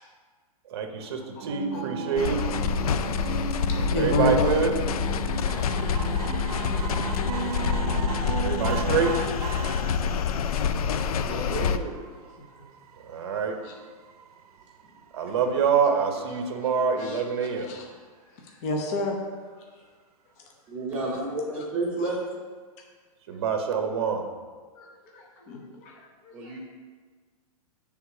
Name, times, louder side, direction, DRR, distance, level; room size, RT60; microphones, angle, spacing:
voice 1, 0.6-2.4 3.9-4.7 8.4-9.1 13.0-13.6 15.1-17.7 23.3-24.2, right 6 dB, 45° right, 5 dB, 0.7 m, -26 dB
sound 1, 1.4-9.2, right 9 dB, 25° right, 0.4 m, -35 dB
sound 2, 2.2-11.8, left 7 dB, 75° left, 0.4 m, -27 dB
voice 2, 3.9-4.5 16.6-16.7 17.0-17.2 17.7-17.8 18.6-19.2 20.9-21.1 22.0-22.1 24.8-24.9 25.1-26.6, left 2 dB, 25° left, 0 dB, 0.6 m, -30 dB
sound 3, 5.4-18.0 18.6-18.7 19.0-19.1 19.3-19.4, right 7 dB, 80° right, 0.6 m, -42 dB
voice 3, 11.2-12.1 15.2-15.3 20.7-22.3 26.3-26.6, right 2 dB, 10° right, -11 dB, 0.9 m, -31 dB
7.8 x 3.5 x 4.7 m, 1.5 s
hypercardioid pair, 175°, 19 cm